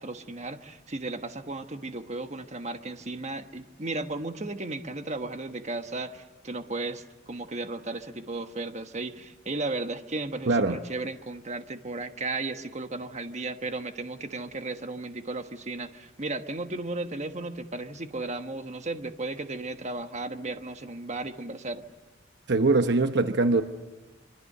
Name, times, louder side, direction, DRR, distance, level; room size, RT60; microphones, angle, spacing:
voice 1, 0.0-21.9, right 2 dB, 35° right, 8 dB, 1.3 m, -35 dB
voice 2, 10.5-10.8 22.5-23.6, right 3 dB, 60° right, 8 dB, 1.0 m, -22 dB
26.5 x 24.5 x 6.8 m, 1.1 s
head